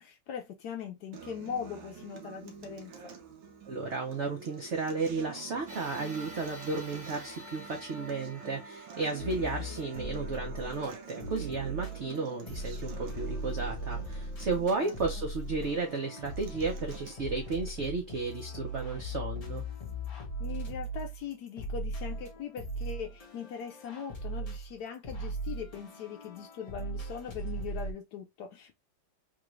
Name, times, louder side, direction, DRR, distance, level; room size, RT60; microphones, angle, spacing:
voice 1, 0.0-3.2 14.8-15.2 20.4-28.8, left 7 dB, 70° left, 1.0 m, -41 dB
Acoustic guitar, 1.1-17.1, right 6 dB, 90° right, 1.6 m, -47 dB
voice 2, 3.7-19.6, right 4 dB, 70° right, 0.6 m, -33 dB
sound 1, 5.7-14.3 14.9-15.0 16.1-16.2, equal, 35° right, 0.9 m, -50 dB
sound 2, 9.2-10.9 11.2-27.9, right 1 dB, 40° left, 0.5 m, -39 dB
3.7 x 2.4 x 3.0 m
omnidirectional pair, 2.1 m